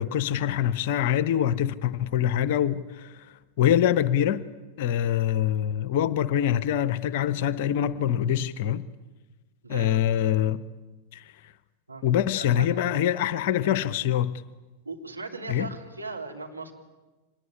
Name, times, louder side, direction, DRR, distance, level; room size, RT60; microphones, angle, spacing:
voice 1, 0.0-3.3 3.6-4.4 4.8-8.9 9.7-10.6 11.1-11.3 12.0-14.3 15.5-15.7, left 10 dB, 50° left, 0.8 m, -24 dB
voice 2, 9.6-10.0 11.9-12.0 12.3-12.7 13.3-13.4 13.6-13.9 14.8-16.7, right 3 dB, 85° right, 3.2 m, -38 dB
25.0 x 20.5 x 9.8 m
figure-of-eight pair, 90°, 0 cm